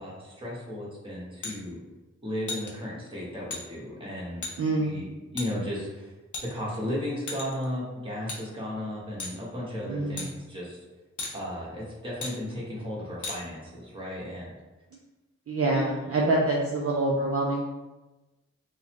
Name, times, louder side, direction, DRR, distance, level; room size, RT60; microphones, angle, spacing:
voice 1, 0.0-1.8 2.2-4.5 4.8-5.1 5.3-6.1 6.5-10.8 11.3-14.6 15.7-15.8, left 1 dB, 15° right, -6 dB, 1.2 m, -35 dB
sound 1, 1.4-1.6 2.5-2.7 3.5-3.6 4.4-4.5 5.4-5.5 6.3-6.8 7.3-7.6 8.3-8.4 9.2-9.4 10.2-10.3 11.2-11.3 12.2-12.3 13.2-13.4, left 3 dB, 80° left, 0.7 m, -35 dB
voice 2, 4.6-4.9 9.9-10.3 15.5-17.7, right 2 dB, 50° right, -3 dB, 0.5 m, -26 dB
3.8 x 2.0 x 3.0 m, 1.1 s
wide cardioid pair, 80°, 29 cm